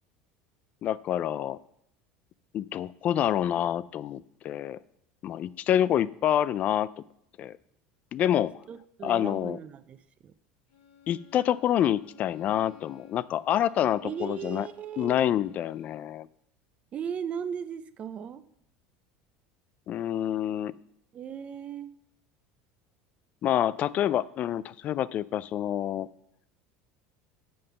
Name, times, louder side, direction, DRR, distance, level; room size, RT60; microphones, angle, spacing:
voice 1, 0.8-1.6 2.5-4.8 5.2-6.9 7.4-7.5 8.1-8.5 9.0-9.6 11.1-14.7 15.0-16.3 19.9-20.8 23.4-26.1, left 11 dB, 40° left, 19 dB, 0.3 m, -27 dB
voice 2, 8.7-10.3 14.0-15.2 16.9-18.4 21.1-22.0, right 8 dB, 30° right, 13 dB, 0.5 m, -37 dB
Bowed string instrument, 10.7-16.1, left 8 dB, 85° left, 1.7 m, -56 dB
7.7 x 5.6 x 6.7 m, 0.73 s
supercardioid pair, 130°, 4 cm